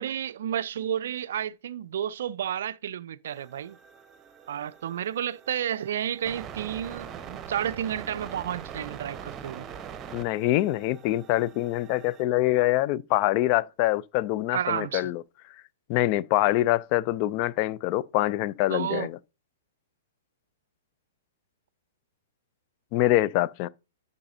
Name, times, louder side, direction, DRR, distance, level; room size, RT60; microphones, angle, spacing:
voice 1, 0.0-3.8 4.5-9.7 14.5-15.1 18.7-19.1, right 10 dB, 55° right, 0.4 m, -31 dB
sound 1, 3.3-12.2, right 8 dB, 20° right, 0.9 m, -43 dB
voice 2, 10.1-15.2 15.9-19.2 22.9-23.7, left 15 dB, 35° left, 0.3 m, -25 dB
11.5 x 6.6 x 2.6 m
figure-of-eight pair, 110°, 0 cm